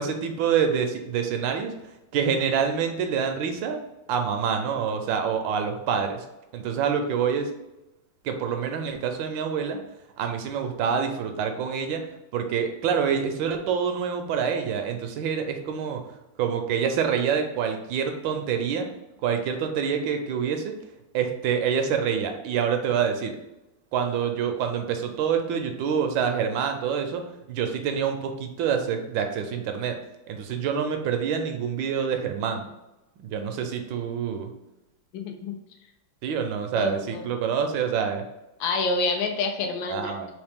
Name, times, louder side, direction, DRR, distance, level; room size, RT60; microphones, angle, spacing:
voice 1, 0.0-1.7 2.1-3.8 4.1-6.2 6.5-7.5 8.2-9.8 10.2-12.0 12.3-16.0 16.4-18.9 19.2-20.7 21.1-23.4 23.9-27.2 27.5-30.0 30.3-32.6 33.2-34.5 36.2-38.2 39.9-40.3, right 7 dB, 75° right, 5 dB, 1.2 m, -26 dB
voice 2, 35.1-35.5 36.7-37.3 38.6-40.3, left 3 dB, 75° left, 3 dB, 1.4 m, -28 dB
3.9 x 3.0 x 3.5 m, 0.96 s
omnidirectional pair, 2.2 m